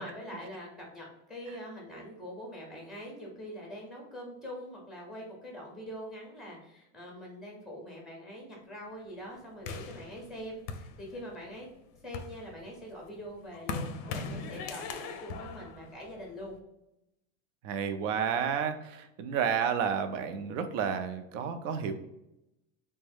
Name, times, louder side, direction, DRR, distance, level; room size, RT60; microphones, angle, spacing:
voice 1, 0.0-11.7 12.0-16.6, equal, ahead, -1 dB, 0.5 m, -44 dB
sound 1, 9.7-11.5 11.9-16.6, left 4 dB, 55° left, 0.4 m, -40 dB
voice 2, 17.6-21.9, right 7 dB, 80° right, 8 dB, 0.6 m, -31 dB
3.5 x 2.2 x 3.3 m, 0.87 s
supercardioid pair, 170°, 38 cm